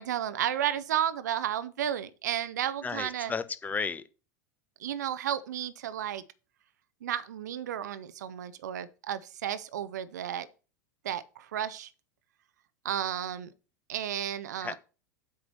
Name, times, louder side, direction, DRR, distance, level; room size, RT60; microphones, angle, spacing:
voice 1, 0.0-3.3 4.8-6.2 7.0-10.5 11.0-11.9 12.8-13.5 13.9-14.8, right 10 dB, 65° right, 0.7 m, -32 dB
voice 2, 2.8-4.0 14.6-14.8, left 5 dB, 15° left, 0.9 m, -33 dB
8.1 x 4.8 x 6.0 m
figure-of-eight pair, 80°, 10 cm